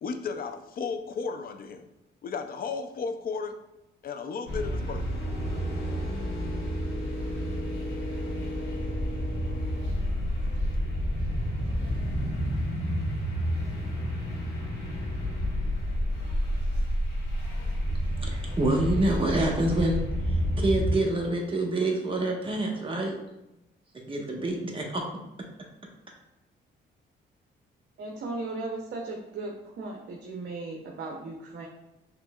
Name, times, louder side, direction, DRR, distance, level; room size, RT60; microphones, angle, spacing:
voice 1, 0.0-1.8 2.2-3.6 4.0-5.1, left 5 dB, 50° left, 7 dB, 0.5 m, -34 dB
sound 1, 4.5-20.9, equal, 65° left, 1.5 m, -30 dB
voice 2, 18.2-20.0 20.3-23.1 24.1-25.0, right 2 dB, 25° right, -1 dB, 1.2 m, -27 dB
voice 3, 28.0-31.7, right 3 dB, 65° right, -1 dB, 0.8 m, -36 dB
5.9 x 3.2 x 2.3 m, 0.94 s
cardioid pair, 90°, 20 cm